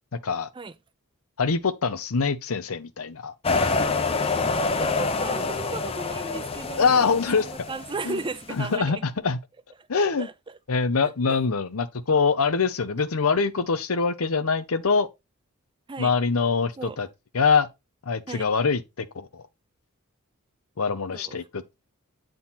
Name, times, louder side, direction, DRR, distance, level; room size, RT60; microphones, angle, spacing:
voice 1, 1.4-3.3 6.8-7.5 8.0-8.2 8.5-9.4 9.9-10.3 10.7-15.1 16.0-17.1 17.3-17.7 18.1-19.4 20.8-21.6, left 5 dB, 85° left, 0.8 m, -24 dB
sound 1, 3.4-8.4, left 3 dB, 30° left, 0.6 m, -27 dB
voice 2, 4.6-7.1 7.4-9.0 9.9-10.3 15.9-16.1 16.8-17.0 18.3-18.5 21.1-21.4, right 3 dB, 25° right, 0.5 m, -35 dB
8.8 x 3.9 x 4.0 m
head